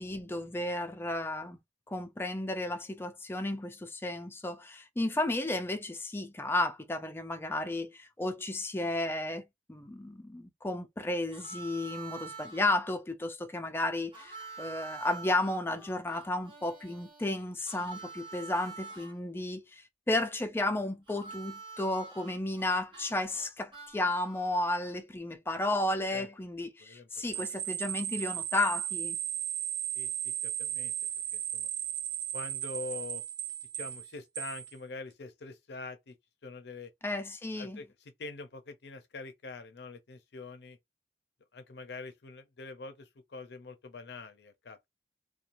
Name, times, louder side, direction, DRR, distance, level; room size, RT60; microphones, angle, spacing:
voice 1, 0.0-1.6 1.9-9.4 9.7-29.2 37.0-37.8, left 2 dB, 15° left, 0.4 m, -33 dB
Harmonica, 11.3-12.7 14.1-19.1 21.1-25.0, right 4 dB, 30° right, 0.8 m, -47 dB
voice 2, 26.8-27.6 29.9-30.9 31.3-31.7 32.3-33.2 33.7-36.2 36.4-36.9 37.6-40.8 41.5-44.9, left 3 dB, 65° left, 0.5 m, -45 dB
sound 1, 27.3-34.7, right 11 dB, 75° right, 0.5 m, -35 dB
2.9 x 2.3 x 2.5 m
head